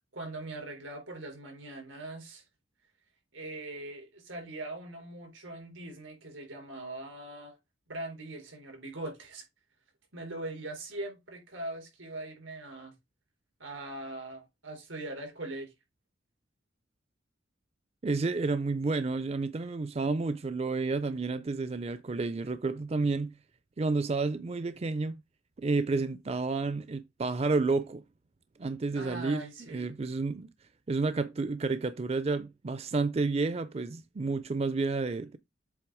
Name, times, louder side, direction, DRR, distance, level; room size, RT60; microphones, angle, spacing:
voice 1, 0.1-2.4 3.3-7.6 7.9-9.4 10.1-12.9 13.6-15.7 28.9-30.0, right 2 dB, 90° right, 3.9 m, -41 dB
voice 2, 18.0-23.3 23.8-25.2 25.6-28.0 28.6-30.5 30.9-35.4, right 3 dB, 30° right, 0.4 m, -30 dB
7.7 x 3.2 x 4.8 m
head